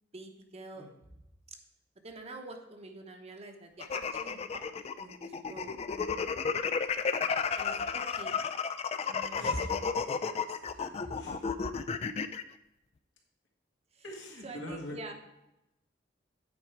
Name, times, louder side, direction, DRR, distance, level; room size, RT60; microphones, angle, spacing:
voice 1, 0.1-0.9 2.0-4.7 5.0-5.7 7.5-8.4 9.1-11.2 13.9-14.0 14.4-15.1, right 2 dB, 35° right, 4 dB, 0.9 m, -46 dB
sound 1, 3.8-12.4, left 5 dB, 35° left, 0.3 m, -32 dB
voice 2, 10.7-11.4 14.0-15.0, equal, 80° left, -1 dB, 1.8 m, -44 dB
8.7 x 4.6 x 4.6 m, 0.90 s
head